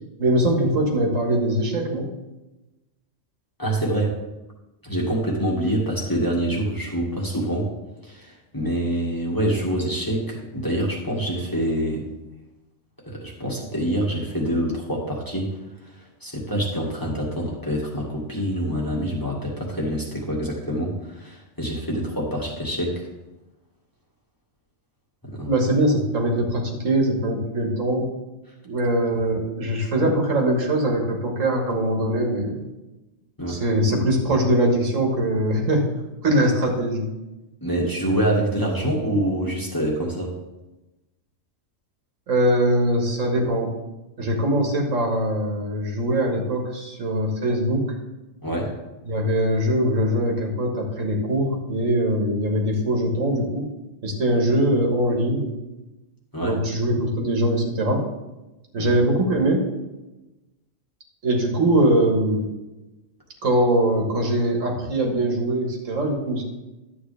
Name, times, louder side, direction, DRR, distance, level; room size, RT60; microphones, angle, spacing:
voice 1, 0.2-2.1 25.4-28.1 28.6-32.6 33.5-35.9 36.2-37.1 42.3-43.7 44.2-48.0 49.1-53.7 54.0-55.5 56.4-58.0 58.7-59.7 61.2-62.5 63.4-66.4, right 1 dB, 75° right, 1 dB, 2.0 m, -22 dB
voice 2, 3.6-4.2 4.8-7.7 8.0-12.0 13.1-15.5 16.2-23.0 25.2-25.5 30.0-30.1 33.4-33.6 37.6-40.3 48.4-48.7 56.3-56.6 58.8-58.9, right 1 dB, 15° left, -3 dB, 1.9 m, -26 dB
11.5 x 8.4 x 3.4 m, 1.0 s
omnidirectional pair, 1.3 m